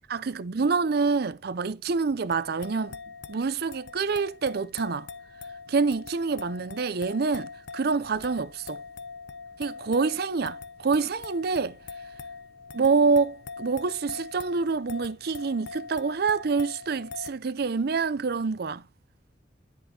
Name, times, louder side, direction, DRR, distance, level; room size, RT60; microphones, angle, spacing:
voice 1, 0.1-3.0 3.3-5.1 5.7-8.8 9.6-11.8 12.7-18.8, right 4 dB, 60° right, 0.5 m, -26 dB
sound 1, 2.3-17.3, left 5 dB, 75° left, 0.7 m, -43 dB
10.5 x 6.1 x 2.8 m
head